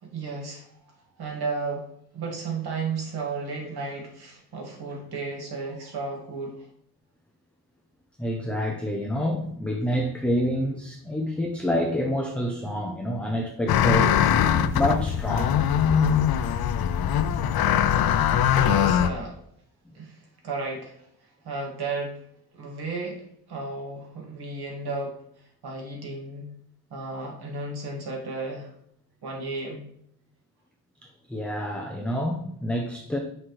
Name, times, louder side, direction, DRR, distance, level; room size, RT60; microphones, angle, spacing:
voice 1, 0.0-0.7 1.2-1.9 2.1-6.7 18.5-19.4 19.9-20.2 20.4-20.9 21.4-22.2 22.5-23.2 23.5-25.2 25.6-26.5 26.9-28.7 29.2-29.8, right 3 dB, 80° right, 0 dB, 2.0 m, -33 dB
voice 2, 8.2-14.2 14.7-15.7 18.5-18.7 31.3-33.2, equal, 5° left, 1 dB, 0.6 m, -27 dB
sound 1, 13.7-19.1, left 9 dB, 70° left, 0.5 m, -21 dB
7.8 x 5.8 x 3.2 m, 0.69 s
wide cardioid pair, 160°, 38 cm